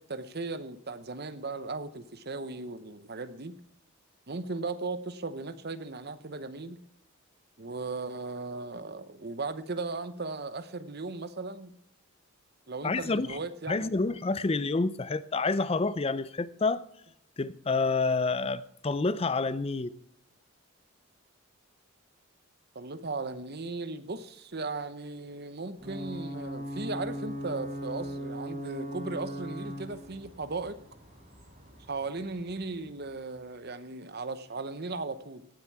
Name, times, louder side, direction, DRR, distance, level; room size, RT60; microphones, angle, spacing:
voice 1, 0.0-3.6 4.3-6.8 7.6-11.8 12.7-14.0 14.5-14.7 22.7-30.8 31.9-35.5, right 3 dB, 45° right, 0.9 m, -37 dB
voice 2, 12.8-13.4 13.7-16.8 17.4-20.0, left 3 dB, 25° left, 0.4 m, -28 dB
Ocean / Boat Water vehicle / Alarm, 25.8-33.3, equal, 30° right, 4.4 m, -40 dB
17.0 x 8.9 x 4.7 m
head